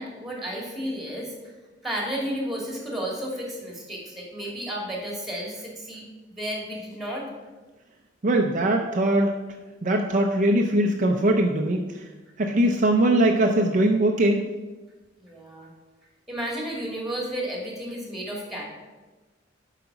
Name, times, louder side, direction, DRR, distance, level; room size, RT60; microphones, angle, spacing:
voice 1, 0.0-1.3 1.8-7.3 15.2-15.7 16.3-18.6, equal, ahead, -2 dB, 2.2 m, -32 dB
voice 2, 8.2-9.3 9.8-12.0 12.4-14.4, right 1 dB, 40° right, 3 dB, 0.6 m, -21 dB
7.8 x 5.0 x 5.8 m, 1.2 s
head